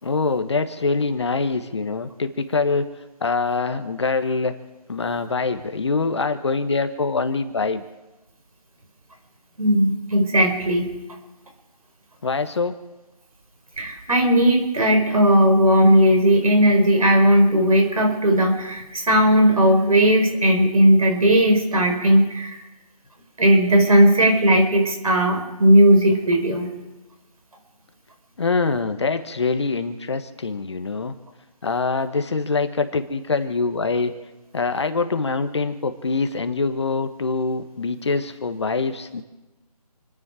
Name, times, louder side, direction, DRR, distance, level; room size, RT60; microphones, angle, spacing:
voice 1, 0.0-2.8 3.2-4.5 4.9-7.8 12.2-12.7 28.4-31.1 31.6-34.1 34.5-39.2, left 4 dB, 45° left, 9 dB, 1.3 m, -24 dB
voice 2, 9.6-11.0 13.8-22.6 23.4-26.7, equal, 65° right, 4 dB, 5.0 m, -17 dB
28.5 x 10.0 x 4.9 m, 1.1 s
figure-of-eight pair, 165°, 20 cm